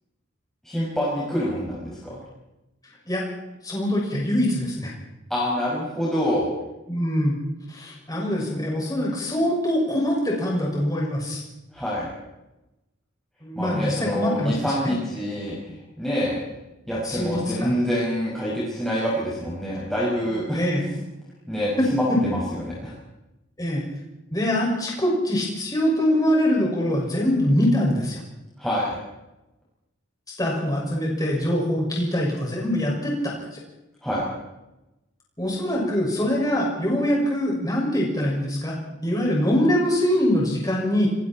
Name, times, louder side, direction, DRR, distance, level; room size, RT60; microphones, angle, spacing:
voice 1, 0.6-2.2 5.3-6.5 11.7-12.1 13.5-16.4 16.8-20.6 21.5-22.9 28.6-29.0 34.0-34.2, equal, ahead, -7 dB, 6.3 m, -26 dB
voice 2, 3.6-4.9 6.9-7.4 7.7-11.4 13.4-14.6 14.8-15.0 17.0-17.8 20.5-21.0 23.6-23.8 24.3-28.2 30.4-33.6 35.4-38.8 39.0-41.1, equal, 20° left, -3 dB, 6.2 m, -23 dB
27.5 x 22.0 x 4.5 m, 0.98 s
head